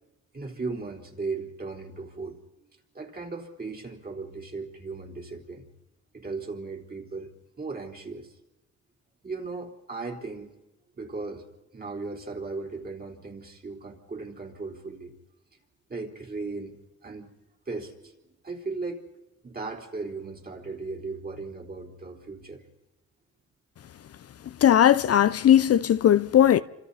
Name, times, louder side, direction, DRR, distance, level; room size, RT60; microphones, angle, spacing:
voice 1, 0.3-2.7 2.9-5.7 6.1-8.4 9.2-10.5 11.0-11.4 11.7-15.1 15.9-16.8 17.0-17.3 17.7-19.0 19.4-22.6, right 3 dB, 30° right, 4.0 m, -37 dB
voice 2, 24.6-26.6, left 10 dB, 50° left, 0.7 m, -18 dB
29.0 x 26.0 x 4.2 m
cardioid pair, 90°, 30 cm